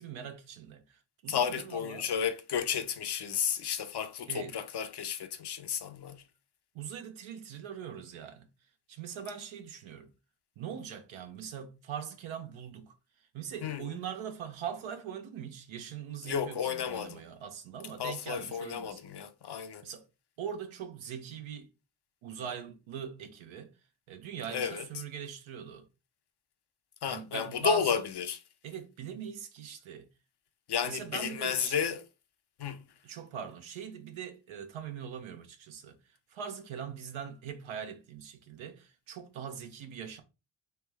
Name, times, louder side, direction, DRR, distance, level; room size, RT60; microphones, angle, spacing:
voice 1, 0.0-2.1 4.3-4.6 6.7-8.5 8.9-10.1 10.6-19.0 19.6-20.1 20.4-21.7 22.2-23.7 24.1-25.9 27.1-28.0 28.6-30.1 30.8-31.8 33.0-40.2, right 8 dB, 75° right, 0.9 m, -42 dB
voice 2, 1.3-6.2 13.6-13.9 16.3-17.2 18.0-19.9 24.5-24.8 27.0-28.4 30.7-32.0 32.6-32.9, left 7 dB, 55° left, 0.8 m, -32 dB
3.4 x 3.1 x 3.4 m
supercardioid pair, 40°, 48 cm